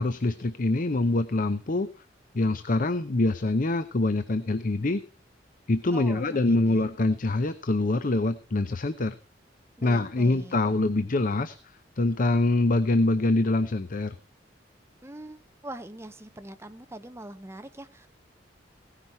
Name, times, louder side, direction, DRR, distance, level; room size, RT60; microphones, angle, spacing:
voice 1, 0.0-1.9 2.3-5.0 5.7-9.1 9.8-11.6 12.0-14.1, left 2 dB, 50° left, 11 dB, 0.7 m, -25 dB
voice 2, 5.9-6.9 9.8-10.6 15.0-18.1, right 1 dB, 15° right, 10 dB, 0.8 m, -43 dB
17.0 x 9.9 x 4.4 m, 0.36 s
head